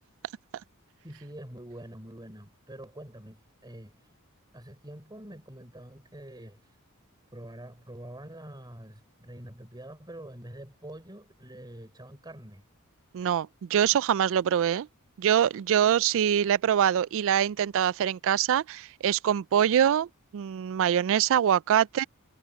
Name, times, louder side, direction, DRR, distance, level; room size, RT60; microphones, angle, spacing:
voice 1, 1.0-4.0 4.5-6.7 7.3-12.6, right 1 dB, 20° right, 6.5 m, -45 dB
voice 2, 13.1-14.9 15.2-20.1 20.3-22.0, right 9 dB, 60° right, 0.3 m, -24 dB
head